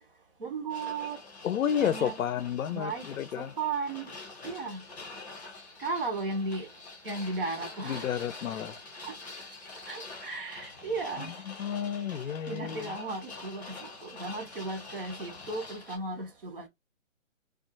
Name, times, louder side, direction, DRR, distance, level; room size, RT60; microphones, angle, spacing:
voice 1, 0.4-1.2 1.8-2.1 2.7-3.1 3.4-4.1 4.4-4.8 5.8-6.7 7.0-8.2 9.0-9.1 9.9-11.3 12.5-16.7, right 3 dB, 45° right, 0.8 m, -35 dB
sound 1, 0.7-16.0, left 3 dB, 15° left, 0.8 m, -46 dB
voice 2, 1.4-3.5 7.8-8.8 11.2-12.9, left 9 dB, 75° left, 0.5 m, -31 dB
2.4 x 2.3 x 2.6 m
hypercardioid pair, 165°, 40 cm